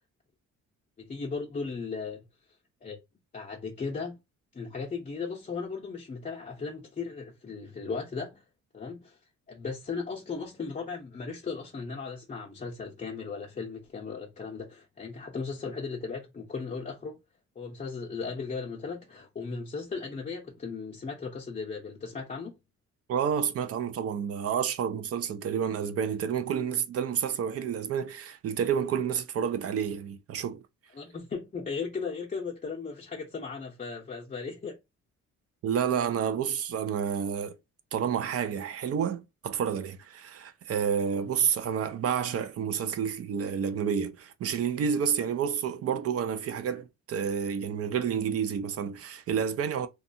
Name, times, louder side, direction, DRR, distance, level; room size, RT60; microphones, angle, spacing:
voice 1, 1.0-2.2 2.8-3.0 3.3-4.2 4.5-8.5 8.7-9.2 9.5-17.2 17.6-22.6 30.9-34.8, left 4 dB, 25° left, 0.6 m, -36 dB
voice 2, 23.1-30.6 35.6-37.6 37.9-49.9, right 7 dB, 55° right, 0.4 m, -29 dB
2.6 x 2.3 x 2.6 m
cardioid pair, 90°, 30 cm